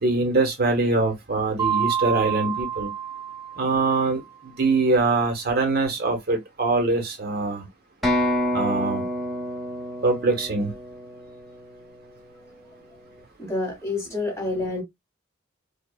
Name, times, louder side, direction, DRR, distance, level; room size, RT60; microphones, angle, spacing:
voice 1, 0.0-2.9 3.6-7.7 8.5-9.0 10.0-10.7, right 3 dB, 55° right, 1.0 m, -23 dB
Mallet percussion, 1.6-4.2, right 9 dB, 25° right, 0.4 m, -28 dB
sound 1, 8.0-11.8, equal, ahead, 1.3 m, -28 dB
voice 2, 13.4-14.8, left 2 dB, 15° left, 1.8 m, -28 dB
4.8 x 2.3 x 2.3 m
head